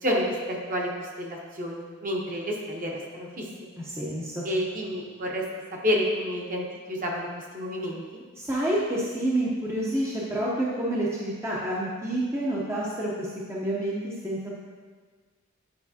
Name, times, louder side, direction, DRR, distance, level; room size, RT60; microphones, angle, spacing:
voice 1, 0.0-3.5 4.4-5.4 5.8-7.3 7.5-8.2, equal, 40° right, -1 dB, 1.0 m, -29 dB
voice 2, 3.8-4.4 8.4-14.5, right 1 dB, 10° right, -6 dB, 0.6 m, -28 dB
9.4 x 5.2 x 2.8 m, 1.5 s
head